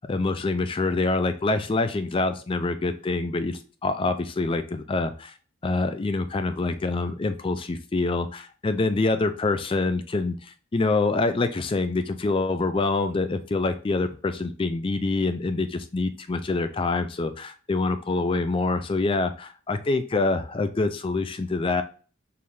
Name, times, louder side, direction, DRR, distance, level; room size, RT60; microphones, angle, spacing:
voice 1, 0.1-5.3 5.6-21.8, left 3 dB, 25° left, 9 dB, 0.3 m, -26 dB
4.6 x 3.5 x 2.6 m, 0.39 s
head